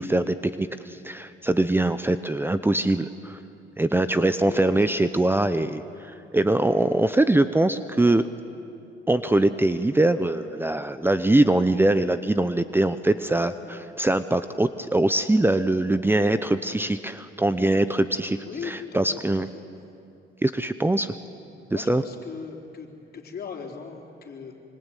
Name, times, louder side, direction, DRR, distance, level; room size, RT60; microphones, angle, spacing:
voice 1, 0.0-3.4 3.8-8.3 9.1-19.5 20.4-21.1 21.7-22.0, right 2 dB, 10° right, 12 dB, 0.9 m, -23 dB
voice 2, 4.5-5.1 18.3-19.2 19.5-19.6 21.7-22.9 23.1-24.6, left 6 dB, 50° left, 2 dB, 4.1 m, -38 dB
25.5 x 25.0 x 9.2 m, 2.6 s
cardioid pair, 90°, 20 cm